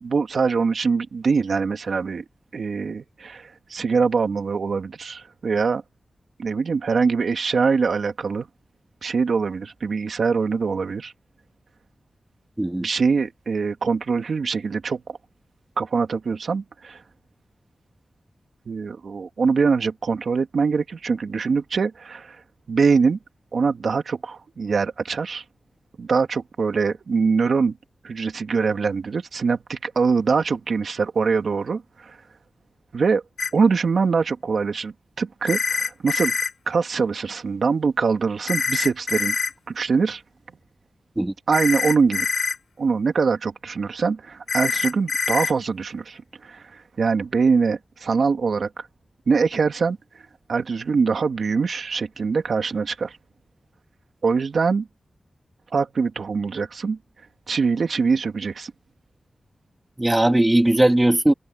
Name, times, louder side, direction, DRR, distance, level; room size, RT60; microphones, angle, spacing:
voice 1, 0.0-2.2 2.5-5.8 6.4-8.5 9.0-11.1 12.8-15.0 15.8-17.0 18.7-22.4 22.7-23.2 23.5-25.4 26.0-27.8 28.0-32.2 32.9-33.2 33.5-36.3 36.7-39.3 39.7-40.2 41.5-42.3 42.8-48.9 49.3-50.0 50.5-53.2 54.2-54.9 55.7-57.0 57.5-58.7, right 5 dB, 75° right, 2.5 m, -23 dB
sound 1, 33.4-33.5 35.5-36.5 38.5-39.5 41.5-42.6 44.5-45.5, left 5 dB, 75° left, 3.3 m, -24 dB
voice 2, 60.0-61.3, right 1 dB, 15° right, 2.6 m, -18 dB
open air
wide cardioid pair, 100°, 0 cm